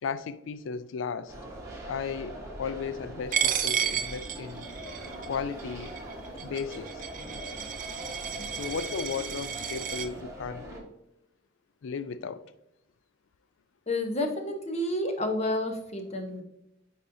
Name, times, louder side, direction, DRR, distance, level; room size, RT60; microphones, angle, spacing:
voice 1, 0.0-1.3 1.9-4.7 5.2-5.9 6.4-7.1 8.4-10.7 11.8-12.4, left 6 dB, 85° left, 0.4 m, -35 dB
sound 1, 1.3-10.8, right 1 dB, 15° right, 1.2 m, -42 dB
Coin (dropping), 3.3-10.1, right 8 dB, 45° right, 0.5 m, -32 dB
voice 2, 13.9-16.4, left 1 dB, 35° left, 0.9 m, -30 dB
8.9 x 4.2 x 2.7 m
head